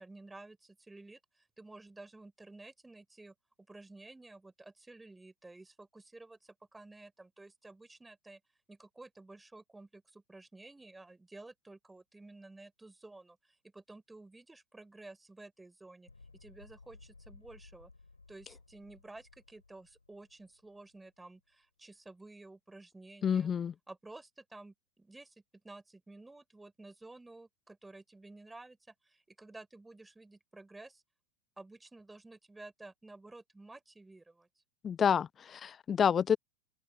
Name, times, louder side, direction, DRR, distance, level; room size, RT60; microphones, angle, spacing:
voice 1, 0.0-3.3 3.7-8.4 8.7-16.1 16.4-17.9 18.3-23.5 23.9-25.3 25.6-31.0 31.6-34.5, right 2 dB, 5° right, 4.3 m, -53 dB
realizations or fighting, 16.1-21.3, left 3 dB, 80° left, 7.8 m, -59 dB
voice 2, 23.2-23.7 34.8-36.4, left 7 dB, 20° left, 0.6 m, -28 dB
figure-of-eight pair, 90°, 0 cm